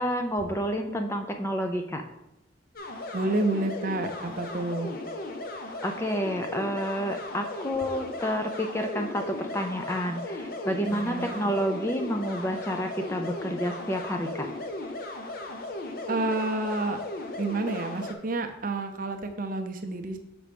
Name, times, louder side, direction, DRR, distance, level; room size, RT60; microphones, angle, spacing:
voice 1, 0.0-2.0 5.8-14.5, equal, 15° left, 5 dB, 0.4 m, -29 dB
sound 1, 2.8-18.1, left 2 dB, 50° left, 0.7 m, -36 dB
voice 2, 3.1-4.9 10.8-11.5 16.1-17.0 17.4-20.2, right 2 dB, 45° right, 6 dB, 0.6 m, -29 dB
6.1 x 4.3 x 5.1 m, 0.88 s
head